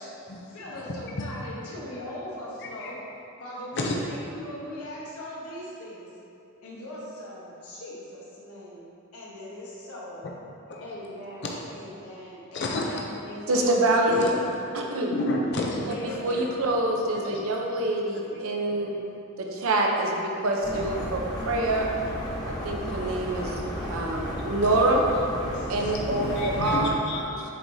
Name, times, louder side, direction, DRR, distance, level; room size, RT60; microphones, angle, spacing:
voice 1, 0.0-3.0 3.4-6.1 6.6-8.9 9.1-10.2 10.8-13.7 15.7-16.2, left 1 dB, 90° left, -6 dB, 1.1 m, -40 dB
voice 2, 0.7-1.3 2.6-2.9 3.7-4.0 10.2-10.3 10.7-10.8 12.5-12.8 14.1-14.6 15.1-16.7 17.0-17.5 18.3-18.4 18.7-19.1 20.7-20.9 22.4-22.7 23.8-24.1 24.6-24.7 25.4-27.4, left 1 dB, 50° left, -1 dB, 0.5 m, -33 dB
voice 3, 13.5-14.3 14.7-15.1 16.2-18.9 19.4-21.2 21.5-21.9 22.5-23.6 23.9-25.0 25.7-27.0, right 2 dB, 70° right, 0 dB, 0.7 m, -25 dB
sound 1, 20.6-26.9, equal, 20° left, 0.8 m, -33 dB
7.4 x 4.7 x 2.7 m, 2.7 s
head